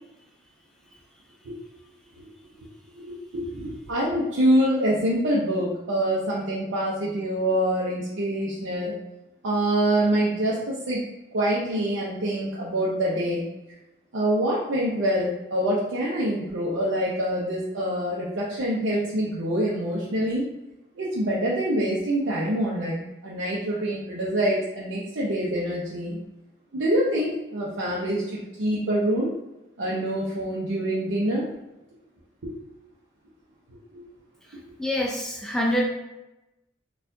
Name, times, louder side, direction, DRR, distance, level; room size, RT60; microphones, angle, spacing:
voice 1, 2.9-8.9 9.4-11.0 11.3-13.4 14.1-20.5 21.0-26.2 26.7-29.3 29.8-31.4 32.4-32.5 33.9-34.0, right 1 dB, 85° right, -6 dB, 0.6 m, -25 dB
voice 2, 34.8-35.9, equal, 5° left, -2 dB, 0.4 m, -25 dB
4.3 x 2.4 x 2.6 m, 0.95 s
head